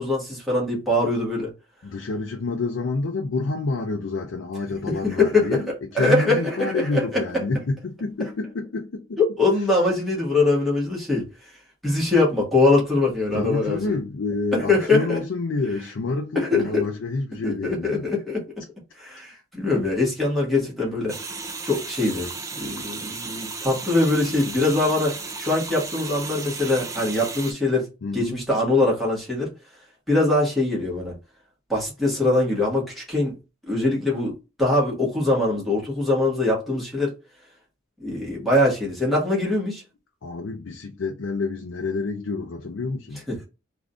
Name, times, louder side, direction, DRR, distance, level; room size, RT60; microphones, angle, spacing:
voice 1, 0.0-1.5 4.9-5.6 5.9-7.2 9.2-11.5 11.8-13.9 14.5-15.2 16.3-16.8 17.4-18.4 19.0-21.2 21.6-22.3 22.5-27.9 28.1-29.5 30.1-31.1 31.7-33.4 33.7-37.2 38.0-39.8 43.3-43.5, left 2 dB, ahead, 1.4 m, -22 dB
voice 2, 1.8-9.2 13.3-18.1 28.0-28.4 40.2-43.2, left 3 dB, 80° left, 0.5 m, -28 dB
sound 1, 21.1-27.5, right 4 dB, 15° right, 0.4 m, -34 dB
3.6 x 2.6 x 2.3 m
head